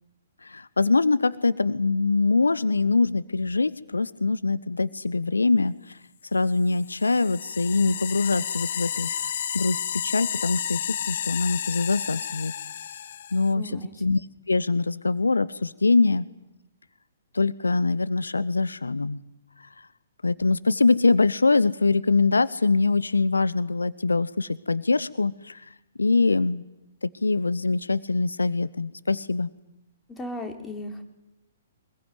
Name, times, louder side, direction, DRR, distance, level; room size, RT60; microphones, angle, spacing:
voice 1, 0.4-6.0 6.3-9.2 9.5-12.5 12.9-13.0 13.3-13.7 14.0-16.2 17.3-19.2 19.6-19.9 20.2-26.6 27.0-29.5, left 3 dB, 75° left, 17 dB, 0.9 m, -23 dB
sound 1, 6.7-13.5, left 9 dB, 55° left, 1.0 m, -32 dB
voice 2, 13.5-13.9 30.1-31.0, left 1 dB, 10° left, 4 dB, 4.1 m, -36 dB
24.5 x 21.0 x 9.6 m, 0.91 s
figure-of-eight pair, 120°, 0 cm